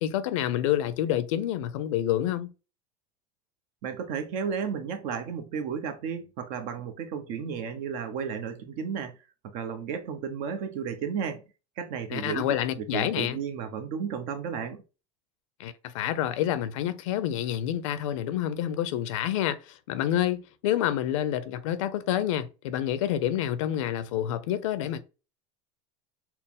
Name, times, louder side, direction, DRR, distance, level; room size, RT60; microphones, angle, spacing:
voice 1, 0.0-2.5 12.1-13.4 15.6-25.0, left 11 dB, 85° left, 0.5 m, -28 dB
voice 2, 3.8-9.1 9.5-11.4 11.8-12.5 12.8-14.8, right 6 dB, 60° right, 0.8 m, -33 dB
4.3 x 2.0 x 3.5 m
supercardioid pair, 135°, 16 cm